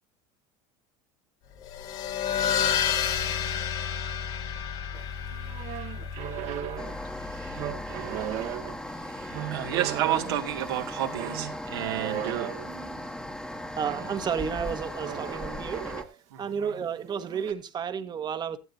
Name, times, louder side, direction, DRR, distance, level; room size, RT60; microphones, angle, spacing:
sound 1, 1.6-8.6, left 8 dB, 70° left, 2.1 m, -31 dB
sound 2, 4.9-13.1 13.9-14.2 15.0-16.1 16.5-17.5, right 11 dB, 60° right, 1.6 m, -37 dB
sound 3, 6.8-16.0, left 1 dB, 5° left, 1.3 m, -38 dB
voice 1, 9.5-12.5 16.3-16.5, right 12 dB, 85° right, 2.1 m, -30 dB
voice 2, 13.8-15.9 16.4-18.6, right 7 dB, 35° right, 1.4 m, -31 dB
14.5 x 12.0 x 2.7 m
supercardioid pair, 105°, 13 cm